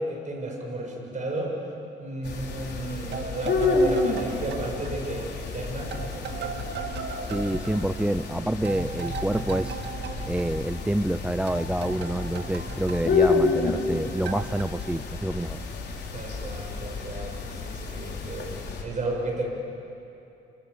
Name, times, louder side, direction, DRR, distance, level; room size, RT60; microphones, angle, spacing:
voice 1, 0.0-1.6 2.0-7.4 16.1-18.5 18.8-19.5, right 2 dB, 40° right, 1 dB, 7.4 m, -33 dB
sound 1, 2.2-18.8, left 4 dB, 60° left, 4.5 m, -30 dB
sound 2, 3.1-5.6 5.9-11.2 11.5-13.9 14.3-14.6, right 6 dB, 65° right, 1.8 m, -38 dB
voice 2, 7.3-9.8 10.2-15.6, right 1 dB, 5° right, 12 dB, 0.5 m, -27 dB
28.5 x 27.0 x 7.1 m, 2.8 s
cardioid pair, 85°, 19 cm